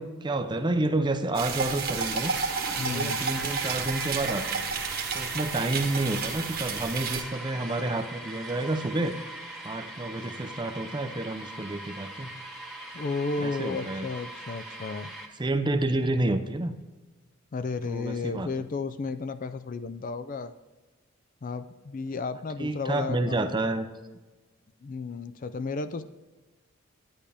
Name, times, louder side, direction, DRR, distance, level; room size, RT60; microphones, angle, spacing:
voice 1, 0.0-2.3 2.8-4.6 5.1-9.2 9.6-12.3 13.4-14.1 15.4-16.7 17.9-18.5 22.6-23.9, right 2 dB, 20° right, 9 dB, 0.5 m, -29 dB
sound 1, 1.3-7.2, right 5 dB, 45° right, 1.1 m, -31 dB
sound 2, 1.5-15.3, right 1 dB, ahead, 1.2 m, -40 dB
voice 2, 2.8-3.2 12.9-15.1 17.5-20.5 21.4-23.6 24.8-26.0, left 4 dB, 40° left, 12 dB, 0.4 m, -33 dB
10.5 x 9.9 x 3.4 m, 1.2 s
head